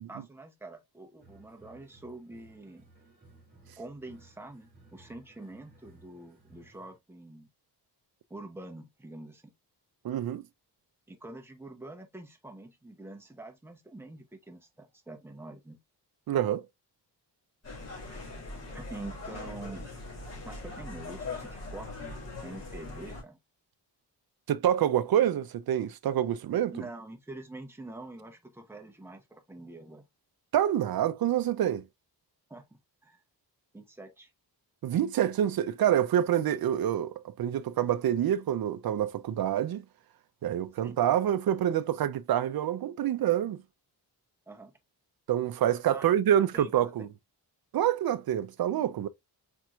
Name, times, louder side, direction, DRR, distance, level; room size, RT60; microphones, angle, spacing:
voice 1, 0.1-2.9 3.8-7.5 8.3-9.5 11.1-15.8 18.7-19.9 20.4-23.4 26.7-30.1 32.5-32.6 33.0-33.2 33.7-34.3 40.8-41.0 44.5-44.7 45.9-46.9, right 2 dB, 5° right, 0.7 m, -46 dB
sound 1, 1.2-7.0, right 2 dB, 20° right, 1.8 m, -59 dB
voice 2, 10.0-10.4 16.3-16.6 24.5-26.7 30.5-31.8 34.8-39.8 40.4-43.6 45.3-47.1 47.7-49.1, right 10 dB, 60° right, 0.5 m, -27 dB
sound 2, 17.6-23.2, left 3 dB, 40° left, 2.6 m, -41 dB
4.4 x 4.4 x 2.3 m
wide cardioid pair, 170°, 40 cm